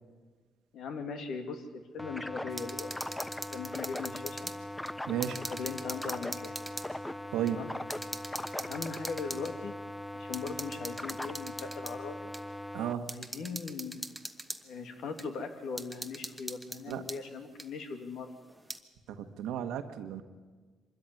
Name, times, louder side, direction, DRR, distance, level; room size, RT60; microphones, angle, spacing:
voice 1, 0.7-2.9 3.5-4.5 5.5-6.6 7.5-7.7 8.6-9.7 10.1-12.3 13.1-14.1 14.6-18.3, left 5 dB, 75° left, 6 dB, 2.4 m, -39 dB
sound 1, 2.0-12.9, left 1 dB, 10° left, 0.7 m, -40 dB
sound 2, 2.5-4.6 4.9-6.9 7.5-7.6 7.9-9.5 10.3-12.0 12.3-12.4 13.1-14.6 15.2-15.3 15.8-17.2 17.6-17.7 18.5-18.8, right 1 dB, 5° right, 1.3 m, -41 dB
voice 2, 5.1-5.4 7.3-7.6 12.7-13.2 16.9-17.0 19.2-20.2, right 10 dB, 85° right, 8 dB, 1.4 m, -33 dB
24.5 x 13.5 x 9.7 m, 1.4 s
cardioid pair, 90°, 0 cm